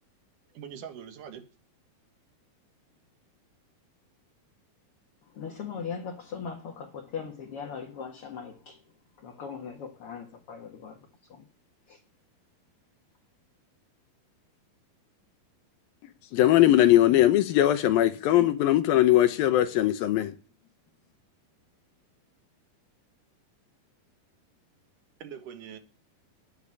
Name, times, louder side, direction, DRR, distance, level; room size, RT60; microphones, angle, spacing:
voice 1, 0.5-1.5 25.2-25.8, right 8 dB, 65° right, 2.8 m, -42 dB
voice 2, 5.2-11.5 11.9-12.0, left 6 dB, 50° left, 2.0 m, -40 dB
voice 3, 16.3-20.3, left 13 dB, 75° left, 2.5 m, -20 dB
10.5 x 10.0 x 9.6 m
omnidirectional pair, 4.4 m